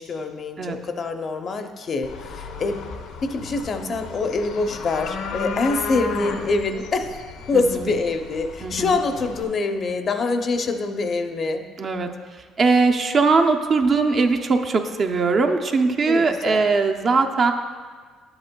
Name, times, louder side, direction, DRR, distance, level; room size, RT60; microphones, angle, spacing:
voice 1, 0.0-2.8 3.2-7.1 7.5-11.6 16.1-16.7, left 3 dB, 40° left, 6 dB, 0.6 m, -25 dB
sound 1, 2.0-9.4, left 4 dB, 80° left, 0.7 m, -34 dB
voice 2, 7.5-7.9 8.6-8.9 11.8-12.1 12.6-17.5, right 4 dB, 40° right, 4 dB, 0.5 m, -20 dB
10.5 x 7.8 x 2.2 m, 1.5 s
cardioid pair, 115°, 0 cm